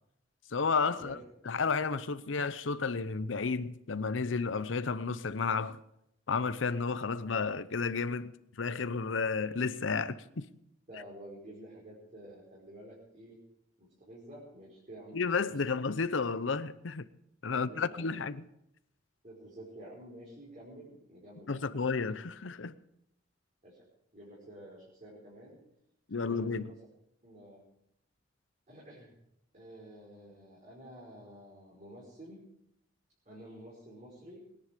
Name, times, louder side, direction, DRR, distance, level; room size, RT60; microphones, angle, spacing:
voice 1, 0.5-1.2 1.5-5.8 6.3-10.5 15.1-17.0 17.4-18.5 21.5-22.7 26.1-26.7, left 4 dB, 80° left, 0.7 m, -32 dB
voice 2, 10.9-13.4 13.8-15.7 17.5-18.1 19.2-22.1 23.6-23.8 24.1-25.6 26.2-26.7 27.2-27.6 28.7-29.1 29.5-32.4 33.2-34.4, right 1 dB, 40° right, 4.7 m, -50 dB
21.5 x 10.0 x 5.2 m
head